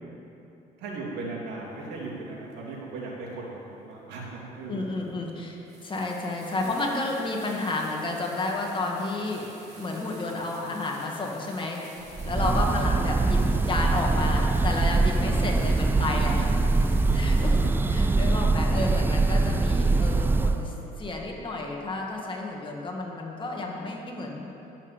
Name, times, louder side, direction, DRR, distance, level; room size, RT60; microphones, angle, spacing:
voice 1, 0.8-4.8 15.1-15.5 17.1-17.6 19.4-19.7 20.8-20.9, right 3 dB, 85° right, -3 dB, 2.8 m, -38 dB
sound 1, 2.5-2.6 4.4-4.5 5.1-5.2 5.6-17.7, right 2 dB, 40° right, 2.7 m, -50 dB
voice 2, 4.7-9.5 9.8-12.0 12.2-17.6 17.9-24.5, left 2 dB, 30° left, -1 dB, 2.0 m, -31 dB
Breathing / Bird, 12.2-20.7, right 3 dB, 10° right, 0.3 m, -23 dB
12.5 x 7.4 x 7.5 m, 3.0 s
cardioid pair, 110°, 17 cm